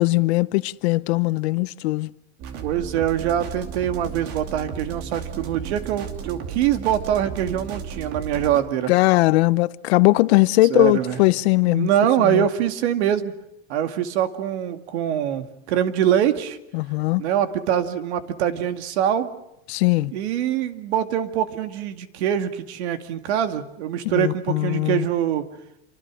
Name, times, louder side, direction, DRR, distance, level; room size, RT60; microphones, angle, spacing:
voice 1, 0.0-2.1 8.9-11.9 12.2-12.5 16.7-17.2 19.7-20.1 24.1-25.1, left 20 dB, 75° left, 0.9 m, -20 dB
sound 1, 2.4-8.6, right 7 dB, 45° right, 2.7 m, -34 dB
voice 2, 2.6-8.9 10.7-11.2 11.7-13.3 13.7-16.6 17.2-19.3 20.1-25.5, right 10 dB, 80° right, 2.3 m, -24 dB
28.0 x 25.0 x 6.3 m
supercardioid pair, 165°, 32 cm